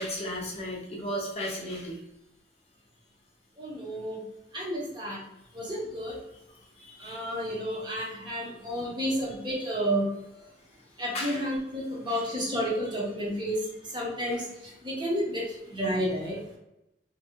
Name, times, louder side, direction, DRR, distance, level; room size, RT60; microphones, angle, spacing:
voice 1, 0.0-2.0 6.8-7.2 8.8-8.9 11.1-11.4 12.1-12.2, equal, 35° left, -2 dB, 0.6 m, -35 dB
voice 2, 3.6-4.2 4.5-5.2 5.5-6.1 7.0-10.1 11.0-13.6 13.9-14.4 14.8-16.4, equal, 25° right, -4 dB, 0.7 m, -31 dB
2.6 x 2.1 x 2.8 m, 0.88 s
head